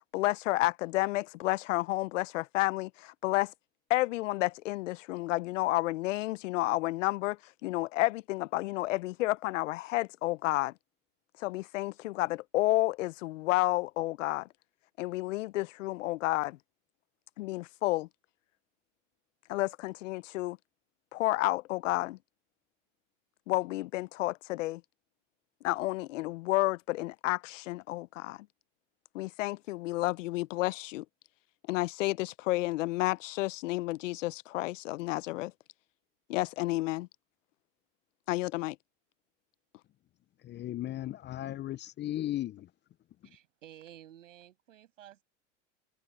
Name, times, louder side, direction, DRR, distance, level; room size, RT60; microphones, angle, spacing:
voice 1, 0.1-3.5 3.9-10.7 11.4-14.5 15.0-16.6 17.4-18.1 19.5-20.6 21.1-22.2 23.5-24.8 25.6-28.4 29.1-31.0 31.7-35.5 36.3-37.1 38.3-38.8, left 18 dB, 80° left, 0.7 m, -31 dB
voice 2, 40.4-42.7 43.2-43.4, left 13 dB, 30° left, 0.5 m, -36 dB
voice 3, 43.2-45.2, right 12 dB, 85° right, 7.1 m, -53 dB
hypercardioid pair, 90°, 37 cm